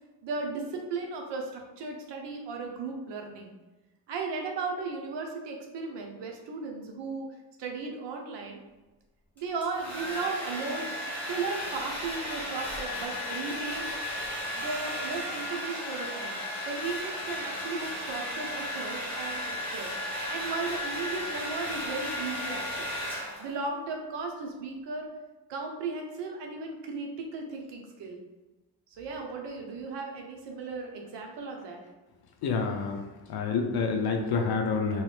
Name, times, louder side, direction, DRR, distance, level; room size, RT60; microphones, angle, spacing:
voice 1, 0.2-3.5 4.1-7.3 7.6-8.6 9.4-10.9 11.2-14.0 14.6-19.9 20.3-22.9 23.4-25.1 25.5-28.2 29.0-31.8, right 4 dB, 75° right, 2 dB, 0.9 m, -36 dB
Domestic sounds home sounds, 9.4-23.6, left 1 dB, 5° left, 1.3 m, -35 dB
voice 2, 32.4-33.0 33.3-35.0, left 4 dB, 60° left, 4 dB, 0.6 m, -28 dB
3.1 x 3.0 x 3.3 m, 1.1 s
cardioid pair, 165°, 42 cm